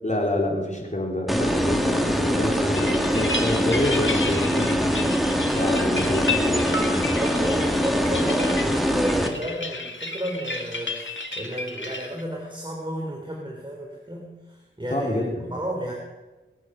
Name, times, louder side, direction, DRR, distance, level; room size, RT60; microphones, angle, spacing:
voice 1, 0.0-6.9 14.9-15.5, left 1 dB, 35° left, 0 dB, 3.7 m, -27 dB
sound 1, 1.3-9.3, equal, ahead, 2.2 m, -23 dB
sound 2, 2.7-12.2, left 3 dB, 70° left, 2.0 m, -32 dB
voice 2, 7.1-15.9, equal, 25° right, 0 dB, 3.3 m, -32 dB
21.5 x 8.8 x 6.6 m, 1.2 s
wide cardioid pair, 45°, 20 cm